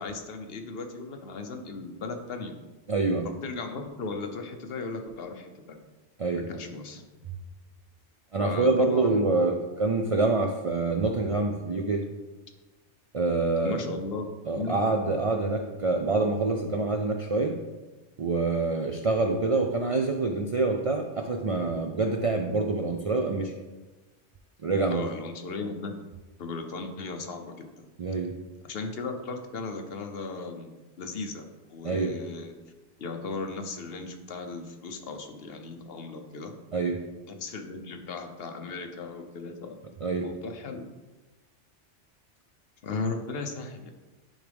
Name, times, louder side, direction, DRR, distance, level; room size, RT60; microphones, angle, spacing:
voice 1, 0.0-2.5 3.2-5.8 6.4-7.0 8.4-9.5 13.6-14.8 24.9-25.9 26.4-27.8 28.6-32.6 33.0-36.5 37.3-39.8 40.2-40.9 42.8-43.9, left 3 dB, 60° left, 5 dB, 0.9 m, -36 dB
voice 2, 2.9-3.3 6.2-6.5 8.3-12.0 13.1-13.8 14.5-17.6 18.2-23.5 24.6-25.0 28.0-28.3 31.8-32.2 36.7-37.0 40.0-40.3, right 3 dB, 60° right, 3 dB, 0.3 m, -26 dB
10.0 x 3.6 x 3.4 m, 1.2 s
omnidirectional pair, 1.2 m